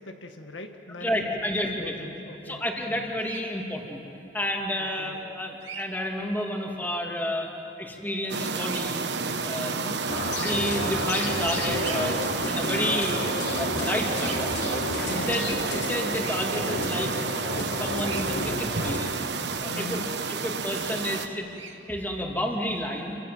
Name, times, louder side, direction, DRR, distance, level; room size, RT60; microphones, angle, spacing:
voice 1, 0.0-1.3 1.6-3.1 4.8-5.2 9.6-10.0 15.1-15.5 19.7-20.1, left 2 dB, 90° left, 5 dB, 1.8 m, -40 dB
voice 2, 1.0-2.0 2.5-4.0 4.3-7.5 7.8-9.1 9.4-9.9 10.3-14.5 15.1-17.1 17.6-19.1 19.6-20.0 20.3-23.2, left 1 dB, 10° left, 0 dB, 2.7 m, -31 dB
Bird vocalization bird call bird song, 3.2-3.4 5.6-5.9 8.6-8.8 11.8-12.1 14.1-14.4 16.1-16.4 18.0-18.3 21.5-21.8, right 7 dB, 85° right, 2.3 m, -40 dB
sound 1, 8.3-21.3, right 4 dB, 65° right, 1.2 m, -30 dB
sound 2, 10.1-19.1, left 2 dB, 60° left, 3.4 m, -32 dB
29.5 x 25.5 x 7.8 m, 2.9 s
head